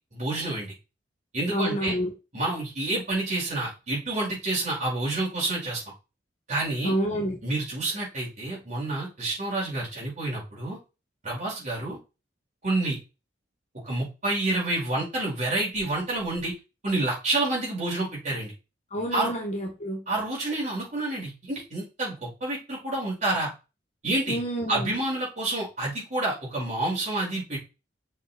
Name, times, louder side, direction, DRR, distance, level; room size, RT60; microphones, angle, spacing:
voice 1, 0.1-0.7 1.3-2.0 2.3-5.8 6.5-7.0 7.4-10.8 11.2-12.0 12.6-13.0 13.8-16.5 16.8-18.5 19.1-19.3 20.1-23.5 24.0-24.4 24.7-27.6, right 2 dB, 45° right, -5 dB, 5.2 m, -28 dB
voice 2, 1.5-2.1 6.8-7.4 18.9-20.0 24.3-24.9, equal, 40° left, 1 dB, 1.8 m, -28 dB
6.8 x 5.9 x 4.4 m, 0.29 s
head